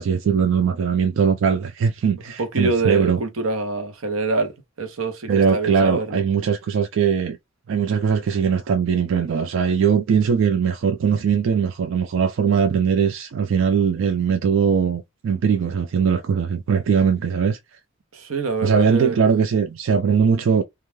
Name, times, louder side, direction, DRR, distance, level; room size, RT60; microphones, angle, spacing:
voice 1, 0.0-3.2 5.3-7.4 7.7-17.6 18.6-20.6, right 6 dB, 65° right, 0.3 m, -20 dB
voice 2, 2.4-6.2 18.1-19.2, right 3 dB, 90° right, 0.8 m, -25 dB
2.3 x 2.2 x 3.1 m
head